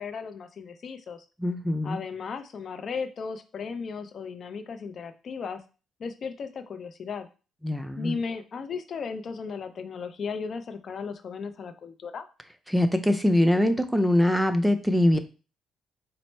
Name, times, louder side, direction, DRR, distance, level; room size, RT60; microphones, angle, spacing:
voice 1, 0.0-1.2 1.8-5.6 6.0-7.3 8.0-12.2, left 5 dB, 55° left, 9 dB, 0.4 m, -35 dB
voice 2, 1.4-2.0 7.6-8.2 12.7-15.2, left 1 dB, ahead, 8 dB, 0.4 m, -23 dB
4.4 x 2.0 x 4.2 m, 0.34 s
cardioid pair, 90°, 0 cm